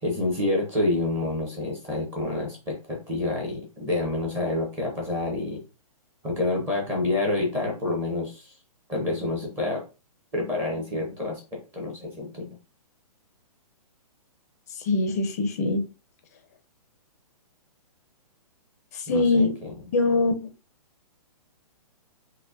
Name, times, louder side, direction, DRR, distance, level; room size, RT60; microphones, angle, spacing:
voice 1, 0.0-5.6 6.2-8.6 8.9-9.8 10.3-12.6 19.1-19.8, left 2 dB, 10° right, -1 dB, 0.6 m, -28 dB
voice 2, 14.9-15.8 19.1-19.5 19.9-20.5, left 3 dB, 25° left, 7 dB, 0.4 m, -22 dB
5.0 x 2.1 x 2.4 m, 0.31 s
hypercardioid pair, 165°, 19 cm